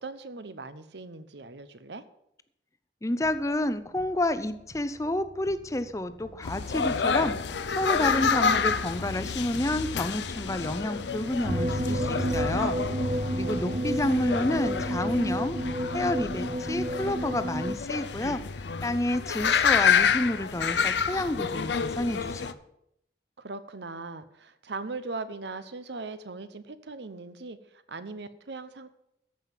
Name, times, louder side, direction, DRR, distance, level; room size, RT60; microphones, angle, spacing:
voice 1, 0.0-2.0 13.4-14.0 23.4-28.9, right 3 dB, 80° right, 13 dB, 0.9 m, -39 dB
voice 2, 3.0-7.4 7.7-12.8 13.3-15.6 15.9-18.4 18.8-22.6, left 1 dB, 20° left, 12 dB, 0.6 m, -29 dB
sound 1, 3.2-15.2, right 1 dB, 55° right, 1.5 m, -52 dB
sound 2, 6.4-22.5, left 6 dB, 80° left, 0.6 m, -29 dB
sound 3, 11.4-17.8, right 1 dB, 35° right, 0.7 m, -30 dB
14.0 x 5.6 x 7.5 m, 0.78 s
head